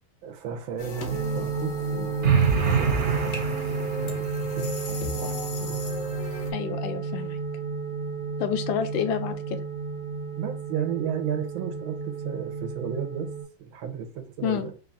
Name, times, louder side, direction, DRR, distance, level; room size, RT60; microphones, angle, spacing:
voice 1, 0.2-5.8 6.2-6.5 10.3-13.3 13.6-14.8, right 9 dB, 80° right, 1.6 m, -35 dB
sound 1, 0.8-6.5, left 2 dB, 60° left, 0.8 m, -37 dB
sound 2, 1.1-13.4, right 4 dB, 50° right, 1.0 m, -32 dB
sound 3, 2.2-4.3, right 6 dB, 65° right, 0.7 m, -24 dB
voice 2, 6.5-7.4 8.4-9.6 14.4-14.7, left 8 dB, 80° left, 1.3 m, -29 dB
3.8 x 2.4 x 3.9 m
omnidirectional pair, 2.2 m